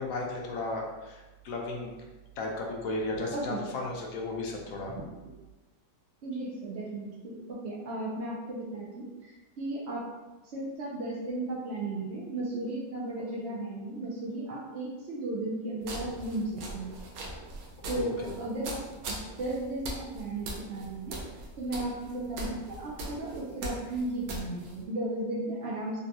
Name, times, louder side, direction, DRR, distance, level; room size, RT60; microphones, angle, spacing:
voice 1, 0.0-1.9 2.4-4.9 18.0-18.3, left 2 dB, 70° left, -1 dB, 0.9 m, -35 dB
voice 2, 3.3-3.6 4.9-5.0 6.2-10.1 10.4-16.9 17.9-21.2 21.6-26.0, right 2 dB, 85° right, -5 dB, 0.5 m, -35 dB
sound 1, 15.8-24.8, right 1 dB, 70° right, 1.0 m, -41 dB
3.6 x 2.2 x 2.7 m, 1.1 s
omnidirectional pair, 1.8 m